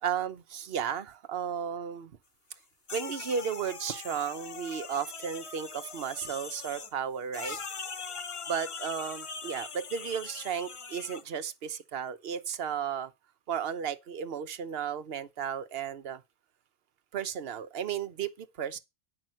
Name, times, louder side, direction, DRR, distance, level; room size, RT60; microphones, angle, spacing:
voice 1, 0.0-2.1 2.9-7.6 8.5-13.1 13.5-16.2 17.1-18.8, right 8 dB, 60° right, 1.0 m, -34 dB
sound 1, 2.9-6.9 7.3-11.2, left 5 dB, 35° left, 0.6 m, -41 dB
9.7 x 6.1 x 6.2 m
omnidirectional pair, 1.2 m